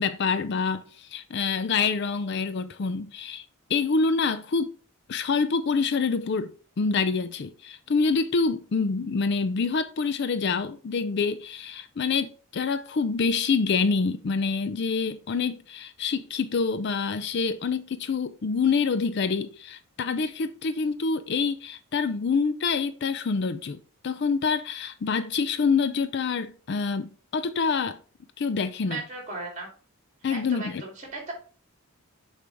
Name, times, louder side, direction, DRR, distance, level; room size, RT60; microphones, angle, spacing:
voice 1, 0.0-3.4 3.7-4.7 5.1-23.8 24.0-28.0 28.4-29.0 30.2-30.8, left 5 dB, 50° left, 0.4 m, -26 dB
voice 2, 28.8-29.7 30.3-31.3, right 3 dB, 35° right, 2.9 m, -36 dB
6.8 x 4.9 x 3.4 m
head